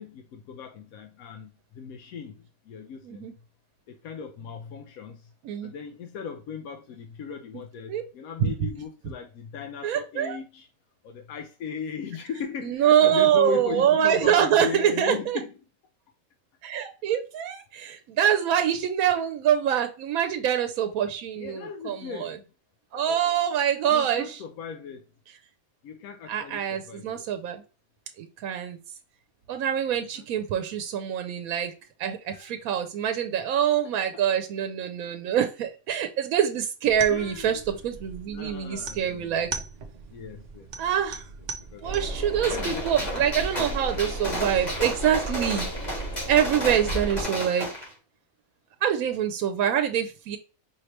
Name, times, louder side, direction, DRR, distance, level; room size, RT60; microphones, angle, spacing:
voice 1, 0.0-3.3 3.9-5.3 5.6-10.7 11.0-15.5 21.4-22.4 22.9-23.3 23.9-25.1 25.8-27.2 30.1-30.3 30.5-30.7 32.3-32.5 34.1-34.2 37.1-37.7 38.3-39.4 40.1-40.7 41.7-41.9 42.4-42.8 43.1-43.2, left 6 dB, 90° left, 1.0 m, -37 dB
voice 2, 9.8-10.4 12.6-15.4 16.6-22.4 22.9-24.4 26.3-27.6 28.2-28.8 29.5-31.7 32.0-39.5 40.8-41.2 41.8-45.7 46.3-47.7 48.8-50.4, right 9 dB, 85° right, 1.0 m, -25 dB
sound 1, 36.9-42.3, right 4 dB, 60° right, 0.4 m, -40 dB
sound 2, 41.8-47.2, right 1 dB, 65° left, 2.9 m, -34 dB
Gunshot gunfire, 42.4-47.9, equal, 30° left, 1.8 m, -33 dB
5.1 x 3.0 x 3.2 m
omnidirectional pair, 1.4 m